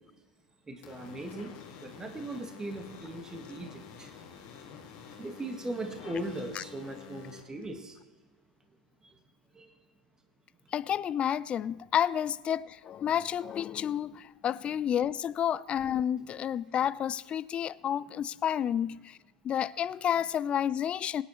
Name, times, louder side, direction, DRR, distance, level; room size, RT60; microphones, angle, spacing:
voice 1, 0.7-1.5 1.8-4.3 5.2-8.0 9.0-9.2 9.5-9.7, right 1 dB, 15° right, 1.7 m, -39 dB
sound 1, 0.8-7.4, left 7 dB, 40° left, 2.1 m, -49 dB
voice 2, 10.7-19.2 19.4-21.2, left 9 dB, 25° left, 0.4 m, -30 dB
23.5 x 10.0 x 3.2 m
figure-of-eight pair, 90°, 4 cm